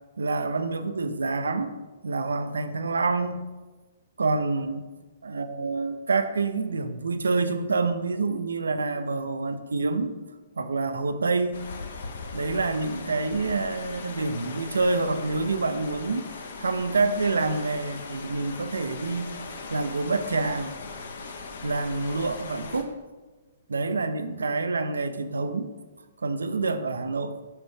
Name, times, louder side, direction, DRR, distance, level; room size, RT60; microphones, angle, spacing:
voice 1, 0.2-1.8 2.0-3.4 4.2-4.9 5.2-10.1 10.6-11.6 12.3-16.3 16.6-19.4 19.7-20.7 21.6-22.9 23.7-25.7 26.2-27.4, right 3 dB, 70° right, 10 dB, 0.5 m, -27 dB
sound 1, 11.5-22.8, left 4 dB, 60° left, 0.8 m, -39 dB
6.4 x 6.1 x 3.2 m, 1.3 s
figure-of-eight pair, 120°, 0 cm